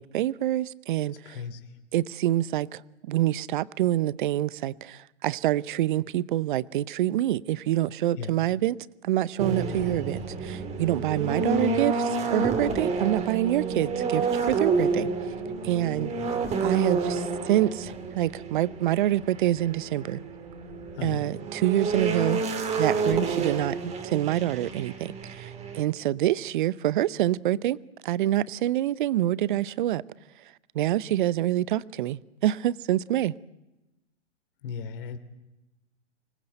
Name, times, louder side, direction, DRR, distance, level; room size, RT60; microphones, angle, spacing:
voice 1, 0.0-1.4 1.9-2.8 3.1-8.8 9.0-15.1 15.6-16.1 16.6-20.2 21.0-22.4 22.8-27.8 28.0-30.0 30.7-33.4, right 13 dB, 40° right, 0.8 m, -26 dB
voice 2, 1.2-1.7 8.2-8.3 20.9-21.3 34.6-35.2, left 6 dB, 45° left, 2.9 m, -36 dB
sound 1, 9.4-25.8, right 4 dB, 20° right, 3.0 m, -29 dB
25.5 x 20.0 x 7.9 m
hypercardioid pair, 125°, 36 cm